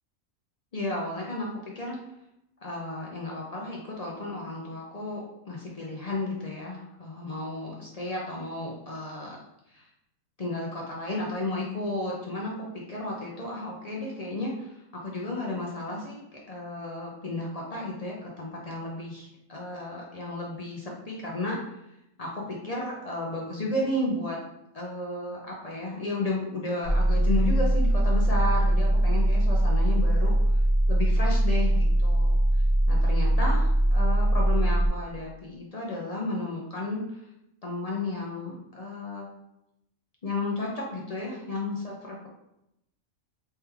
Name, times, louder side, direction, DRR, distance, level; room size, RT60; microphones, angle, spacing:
voice 1, 0.7-1.5 1.7-2.0 2.6-9.4 9.7-9.9 10.4-16.2 16.5-21.8 22.2-24.4 24.7-30.5 30.9-32.4 32.9-37.2 37.6-39.3 40.2-42.3, left 2 dB, 55° left, -3 dB, 0.4 m, -33 dB
sound 1, 26.8-34.9, right 1 dB, 40° right, 0.9 m, -22 dB
3.5 x 3.3 x 3.0 m, 0.85 s
omnidirectional pair, 1.4 m